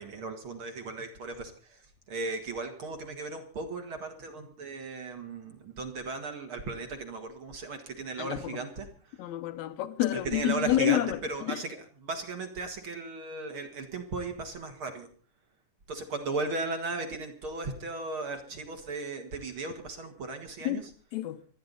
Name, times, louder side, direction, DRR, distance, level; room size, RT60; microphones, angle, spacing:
voice 1, 0.0-1.5 2.1-8.9 10.3-11.8 12.0-15.1 15.9-20.8, right 3 dB, 45° right, 2.1 m, -36 dB
voice 2, 8.2-8.6 9.2-11.6 20.6-20.9 21.1-21.4, left 14 dB, 65° left, 2.0 m, -29 dB
28.0 x 10.5 x 4.0 m
omnidirectional pair, 4.0 m